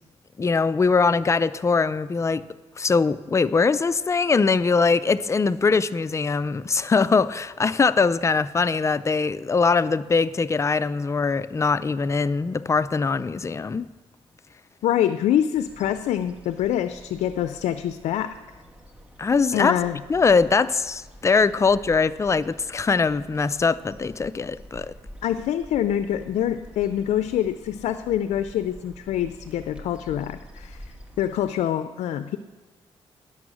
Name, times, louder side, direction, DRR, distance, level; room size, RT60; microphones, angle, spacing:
voice 1, 0.4-2.4 2.8-13.9 19.2-19.7 20.1-24.9, left 4 dB, 25° left, 0.4 m, -22 dB
voice 2, 14.8-18.4 19.5-20.0 25.2-30.9 31.2-32.4, left 11 dB, 90° left, 0.4 m, -25 dB
sound 1, 15.5-31.5, equal, 10° right, 1.5 m, -47 dB
11.0 x 6.9 x 6.2 m
cardioid pair, 80°, 11 cm